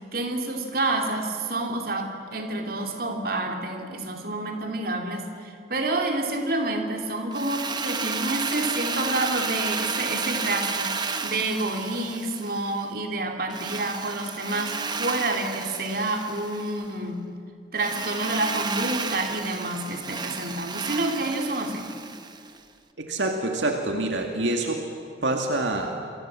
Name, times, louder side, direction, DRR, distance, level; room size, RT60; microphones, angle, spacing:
voice 1, 0.1-17.2 17.7-21.9, right 2 dB, 50° right, 3 dB, 2.9 m, -28 dB
Drill, 7.3-12.8 13.5-16.8 17.8-22.6, right 4 dB, 25° right, 1.0 m, -32 dB
voice 2, 23.0-24.9 25.2-26.0, right 2 dB, 75° right, 3 dB, 2.2 m, -26 dB
28.0 x 23.5 x 7.6 m, 2.3 s
head